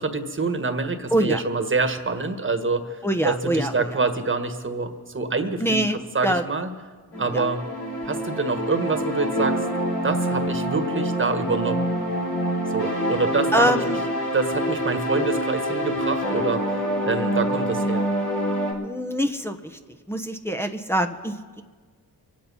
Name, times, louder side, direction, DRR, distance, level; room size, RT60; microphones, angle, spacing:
voice 1, 0.0-5.8 6.1-6.7 7.2-7.7 8.0-9.6 10.0-11.8 12.7-14.0 14.3-16.8 17.0-18.1, right 3 dB, 30° right, 7 dB, 1.6 m, -26 dB
voice 2, 1.1-1.4 3.0-4.0 5.6-6.0 6.2-6.4 7.1-7.5 13.5-14.0 18.8-19.8 20.1-21.6, right 1 dB, 5° left, 4 dB, 1.0 m, -24 dB
sound 1, 7.1-18.7, equal, 65° left, 4.7 m, -26 dB
24.5 x 8.6 x 5.6 m, 1.5 s
cardioid pair, 75°, 39 cm